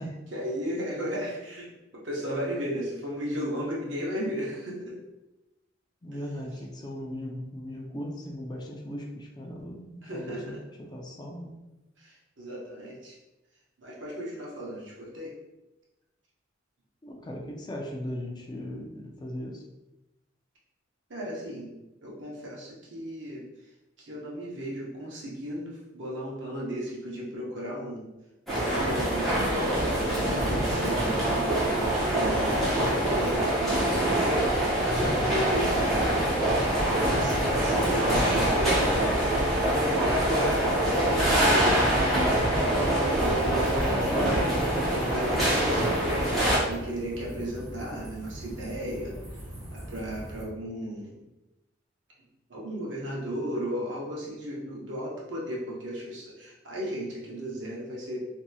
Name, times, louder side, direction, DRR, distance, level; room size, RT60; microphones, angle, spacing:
voice 1, 0.3-5.0 6.1-6.2 10.0-10.6 12.0-13.2 13.8-15.3 21.1-21.7 22.0-23.4 24.0-28.1 28.5-31.6 32.1-34.5 34.8-36.2 36.9-39.0 39.7-41.8 42.6-49.1 49.7-51.2 52.5-58.2, equal, 70° right, -4 dB, 0.8 m, -35 dB
voice 2, 6.0-10.5 10.9-11.6 17.0-19.6, equal, 20° left, 0 dB, 0.4 m, -38 dB
sound 1, 28.5-46.6, right 1 dB, ahead, 0.8 m, -25 dB
sound 2, 42.9-50.4, right 1 dB, 35° right, 1.1 m, -41 dB
2.8 x 2.7 x 2.3 m, 0.99 s
head